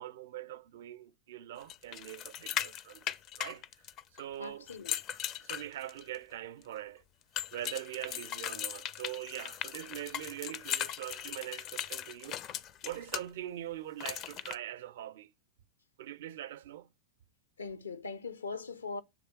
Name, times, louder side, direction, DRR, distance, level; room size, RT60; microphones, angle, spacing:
voice 1, 0.0-3.0 3.4-3.6 4.1-4.7 5.4-7.0 7.5-12.4 12.8-15.3 16.0-16.9, right 12 dB, 55° right, 0.5 m, -42 dB
sound 1, 1.7-4.2 4.7-6.2 7.4-13.2 14.0-14.5, left 10 dB, 35° left, 0.5 m, -38 dB
voice 2, 4.4-4.9 17.6-19.0, left 4 dB, 75° left, 0.7 m, -40 dB
7.5 x 3.3 x 4.4 m
figure-of-eight pair, 90°, 0 cm